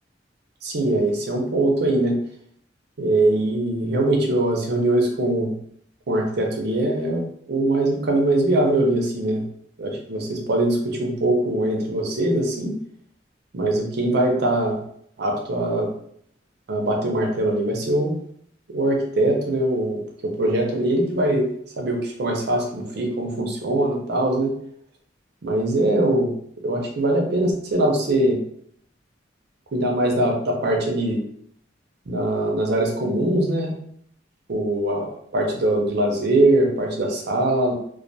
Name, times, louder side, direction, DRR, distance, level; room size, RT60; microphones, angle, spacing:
voice 1, 0.6-2.2 3.0-5.5 6.1-7.2 7.5-9.4 9.8-12.8 13.5-14.8 15.2-15.9 16.7-18.2 18.7-21.5 21.8-24.5 25.4-26.3 26.6-28.4 29.7-31.2 32.1-33.7 34.5-37.7, right 1 dB, 60° right, 1 dB, 0.6 m, -22 dB
2.2 x 2.2 x 2.7 m, 0.67 s
head